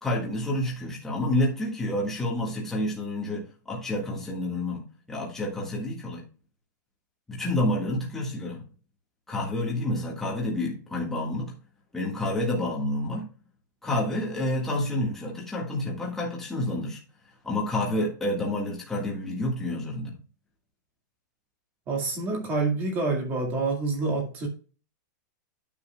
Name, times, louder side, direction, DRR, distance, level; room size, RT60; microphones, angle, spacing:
voice 1, 0.0-4.8 5.1-6.2 7.3-8.7 9.3-11.5 11.9-13.3 13.8-17.0 17.4-20.2, left 1 dB, 5° left, 1.6 m, -29 dB
voice 2, 21.9-24.5, right 3 dB, 20° right, 1.9 m, -27 dB
9.5 x 8.2 x 2.3 m
supercardioid pair, 180°, 10 cm